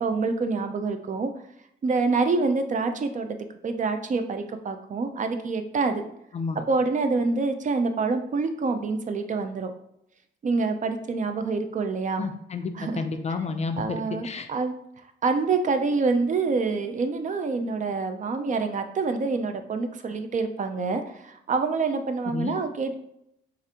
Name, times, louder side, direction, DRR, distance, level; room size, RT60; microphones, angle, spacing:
voice 1, 0.0-1.3 1.8-3.4 3.6-6.0 6.7-9.7 10.4-12.3 12.8-13.0 13.8-14.7 15.2-22.9, right 4 dB, 40° right, 7 dB, 0.5 m, -26 dB
voice 2, 12.2-14.5 22.3-22.6, left 4 dB, 35° left, 7 dB, 0.4 m, -31 dB
4.7 x 2.5 x 2.8 m, 0.78 s
cardioid pair, 90°, 20 cm